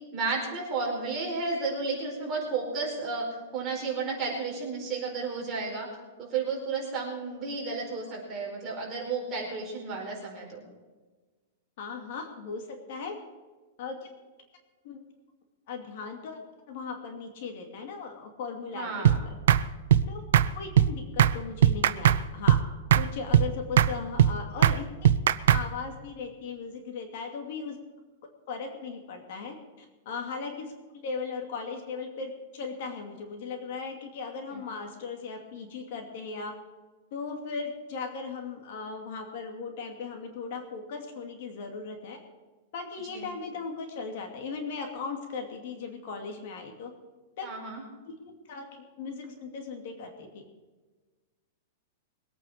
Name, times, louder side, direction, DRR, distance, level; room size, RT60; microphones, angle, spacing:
voice 1, 0.1-3.3 3.5-5.9 6.2-10.6 18.7-19.2 34.5-34.7 43.1-43.3 47.4-47.8, right 4 dB, 20° right, -3 dB, 4.6 m, -32 dB
voice 2, 11.8-13.1 13.8-14.0 14.8-15.0 15.7-16.4 16.7-19.3 20.1-20.2 20.5-22.6 22.9-24.9 25.5-27.8 28.5-36.5 37.1-42.2 42.7-46.9 47.4-47.5 48.1-48.2 48.5-50.4, left 4 dB, 45° left, 3 dB, 2.5 m, -37 dB
sound 1, 19.0-19.2 19.5-19.6 19.9-20.1 20.3-20.5 20.8-20.9 21.2-21.3 21.6-22.2 22.5-22.6 22.9-23.1 23.3-23.5 23.8-23.9 24.2-24.3 24.6-24.8 25.0-25.6, right 10 dB, 70° right, 0.7 m, -19 dB
22.5 x 9.1 x 5.1 m, 1.3 s
supercardioid pair, 175°, 0 cm